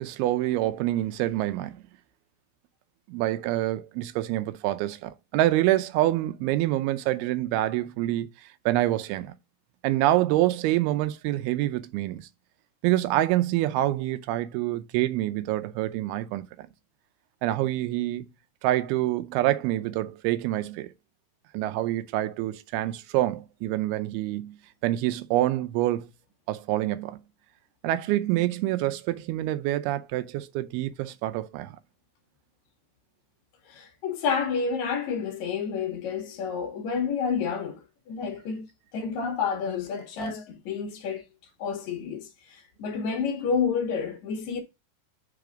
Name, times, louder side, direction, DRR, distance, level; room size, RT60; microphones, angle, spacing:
voice 1, 0.0-1.8 3.1-8.3 8.7-9.3 9.8-12.3 12.8-16.7 17.4-18.3 18.6-20.9 21.5-24.6 24.8-26.1 26.5-27.2 27.8-31.8, right 15 dB, 85° right, 2.6 m, -26 dB
voice 2, 33.7-38.7 38.9-41.2 41.6-44.6, left 6 dB, 75° left, 1.7 m, -29 dB
4.9 x 4.7 x 5.0 m
omnidirectional pair, 4.4 m